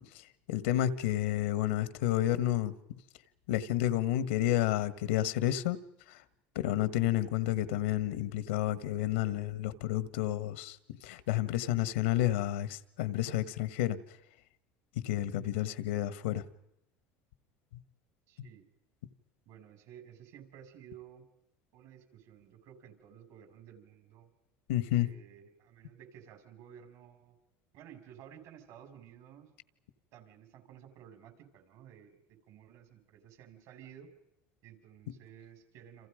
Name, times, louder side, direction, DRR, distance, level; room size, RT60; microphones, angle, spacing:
voice 1, 0.1-2.7 3.5-5.8 6.1-6.2 6.5-10.8 11.0-14.0 14.9-16.4 24.7-25.1, left 13 dB, 90° left, 15 dB, 1.7 m, -30 dB
voice 2, 18.3-18.6 19.5-21.3 21.7-24.3 25.0-27.4 27.7-29.5 30.1-32.2 32.5-34.1 34.6-36.1, right 9 dB, 70° right, 6 dB, 6.1 m, -54 dB
29.5 x 27.5 x 5.2 m, 0.82 s
supercardioid pair, 105°, 6 cm